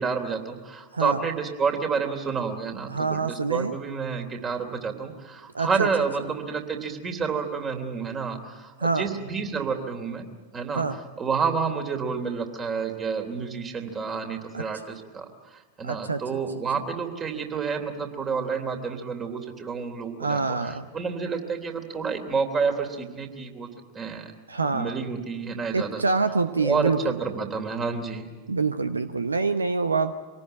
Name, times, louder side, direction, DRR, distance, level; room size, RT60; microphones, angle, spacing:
voice 1, 0.0-10.2 10.5-15.3 15.8-23.7 23.9-24.3 24.6-26.0 26.6-28.3, right 5 dB, 25° right, 5 dB, 3.2 m, -29 dB
voice 2, 2.9-3.7 5.5-5.9 8.8-9.1 10.7-11.0 14.5-14.6 15.8-16.2 20.2-20.9 24.5-24.9 25.7-27.1 28.5-30.1, right 4 dB, 75° right, 12 dB, 0.8 m, -26 dB
25.0 x 18.5 x 8.9 m, 1.3 s
figure-of-eight pair, 90°, 0 cm